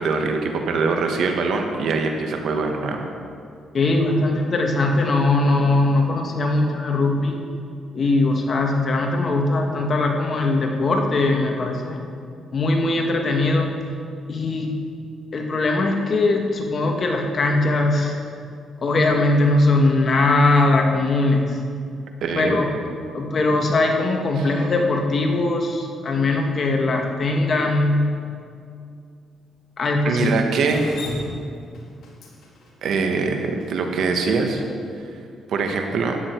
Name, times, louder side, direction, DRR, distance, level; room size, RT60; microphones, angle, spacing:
voice 1, 0.0-3.0 22.2-22.7 24.4-24.5 30.0-30.9 32.8-34.6 35.5-36.2, right 4 dB, 70° right, 4 dB, 1.4 m, -23 dB
voice 2, 3.7-7.4 7.9-12.0 12.5-13.7 14.3-14.8 15.3-18.2 18.8-21.6 22.3-22.7 23.1-28.2 29.8-30.3, left 2 dB, 45° left, 2 dB, 1.7 m, -20 dB
Drip, 30.6-34.7, left 2 dB, 65° left, 2.7 m, -35 dB
13.0 x 10.0 x 4.6 m, 2.4 s
cardioid pair, 90°, 0 cm